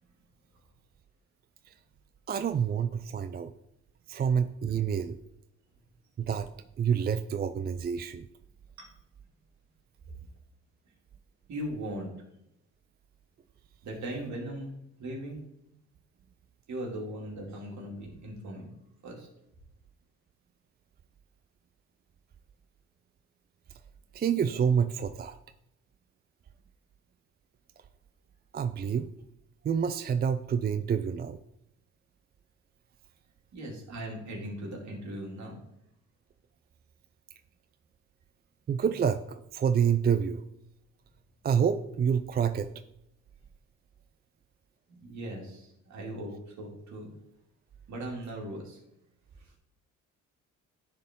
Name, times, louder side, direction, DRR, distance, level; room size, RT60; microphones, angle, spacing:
voice 1, 2.3-3.5 4.1-5.1 6.2-6.5 6.8-8.3 24.1-25.4 28.5-29.1 29.6-31.4 38.7-40.4 41.4-42.7, right 7 dB, 35° right, 10 dB, 0.4 m, -28 dB
voice 2, 11.5-12.1 13.8-14.7 15.0-15.4 16.7-18.7 19.0-19.3 33.5-35.6 44.9-47.1 47.9-48.8 49.4-49.5, right 1 dB, 65° right, -1 dB, 2.5 m, -39 dB
10.5 x 4.5 x 3.7 m, 0.81 s
cardioid pair, 90°, 30 cm